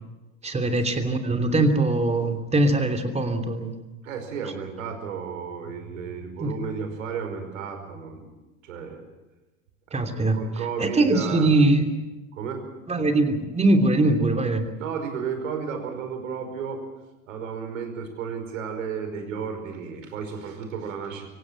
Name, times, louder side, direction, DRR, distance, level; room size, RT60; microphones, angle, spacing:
voice 1, 0.4-3.7 6.4-6.5 9.9-10.4 10.8-11.8 12.9-14.6, right 2 dB, 15° right, 6 dB, 3.0 m, -22 dB
voice 2, 4.0-8.3 8.6-9.0 9.9-11.5 12.3-12.6 14.8-16.8 17.3-21.3, right 6 dB, 65° right, 6 dB, 5.3 m, -33 dB
25.0 x 17.0 x 7.8 m, 1.1 s
figure-of-eight pair, 80°, 42 cm